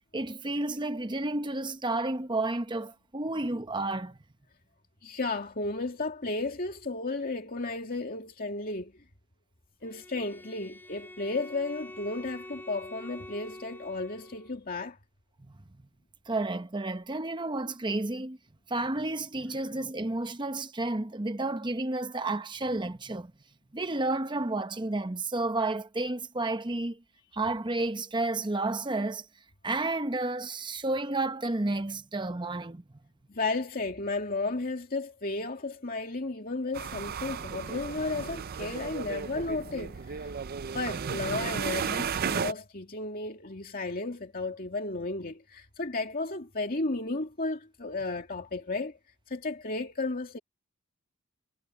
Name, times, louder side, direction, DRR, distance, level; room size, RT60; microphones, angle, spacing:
voice 1, 0.1-4.2 15.4-15.5 16.3-18.4 18.7-23.3 23.7-27.0 27.3-29.3 29.6-32.8, right 2 dB, 20° right, 0.9 m, -31 dB
voice 2, 5.0-8.9 9.8-15.0 33.3-40.3 40.7-49.0 49.3-50.4, left 3 dB, 40° left, 2.4 m, -33 dB
Bowed string instrument, 9.8-14.6, left 1 dB, 10° left, 4.0 m, -46 dB
sound 1, 36.7-42.5, right 6 dB, 45° right, 0.5 m, -34 dB
head